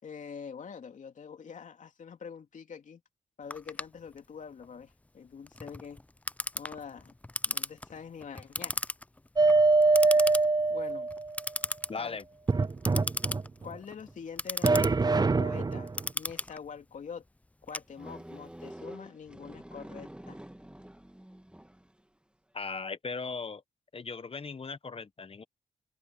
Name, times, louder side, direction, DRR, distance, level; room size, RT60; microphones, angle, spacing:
voice 1, 0.0-3.0 3.4-6.0 6.5-7.1 7.4-8.8 10.7-11.1 12.0-12.2 13.6-17.2 17.6-20.4, left 6 dB, 70° left, 3.0 m, -45 dB
Clock, 3.5-18.4, left 2 dB, 10° left, 0.4 m, -38 dB
sound 1, 9.4-11.4 12.5-13.7 14.6-16.0, right 3 dB, 30° right, 0.7 m, -24 dB
voice 2, 11.9-12.2 22.5-23.6 23.9-25.4, left 4 dB, 45° left, 1.3 m, -38 dB
sound 2, 18.0-22.0, right 1 dB, 5° right, 1.7 m, -47 dB
supercardioid pair, 45°, 14 cm